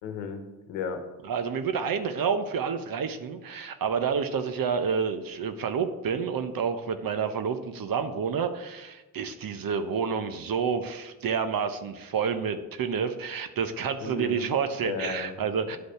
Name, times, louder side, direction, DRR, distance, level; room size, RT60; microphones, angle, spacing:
voice 1, 0.0-1.0 14.0-14.5 14.8-15.3 15.7-15.8, left 6 dB, 90° left, 7 dB, 1.1 m, -34 dB
voice 2, 1.2-15.8, right 6 dB, 55° right, 9 dB, 1.0 m, -29 dB
10.0 x 5.2 x 5.7 m, 1.1 s
hypercardioid pair, 50°, 41 cm